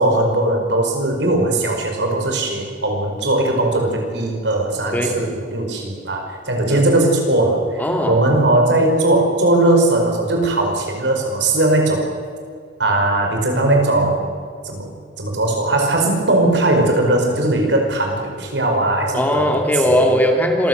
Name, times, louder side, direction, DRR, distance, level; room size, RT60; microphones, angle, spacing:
voice 1, 0.0-12.1 12.8-14.3 14.6-14.9 15.2-19.5 20.0-20.1, right 2 dB, 70° right, 2 dB, 5.2 m, -18 dB
voice 2, 7.8-8.2 19.1-20.7, equal, 10° left, 2 dB, 2.5 m, -18 dB
26.0 x 15.0 x 8.0 m, 2.3 s
head